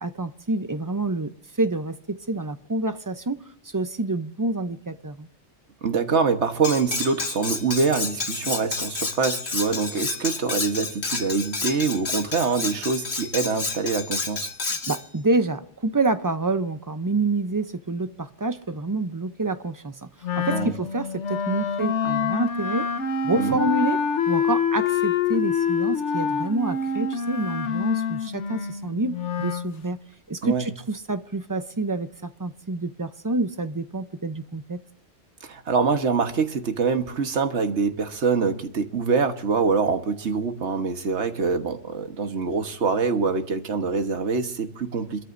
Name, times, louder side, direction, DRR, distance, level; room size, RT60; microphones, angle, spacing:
voice 1, 0.0-5.3 14.7-20.0 20.4-22.9 23.2-24.0 24.3-30.0 30.3-34.8, right 2 dB, 25° right, 0.5 m, -27 dB
voice 2, 5.8-14.5 20.5-20.7 23.4-23.6 30.4-30.7 35.4-45.2, right 5 dB, 75° right, 1.6 m, -25 dB
Cutlery silverware, 6.6-15.0, left 4 dB, 65° left, 1.8 m, -30 dB
Wind instrument woodwind instrument, 20.2-29.7, left 6 dB, 85° left, 1.2 m, -26 dB
27.0 x 13.0 x 2.6 m
omnidirectional pair, 1.2 m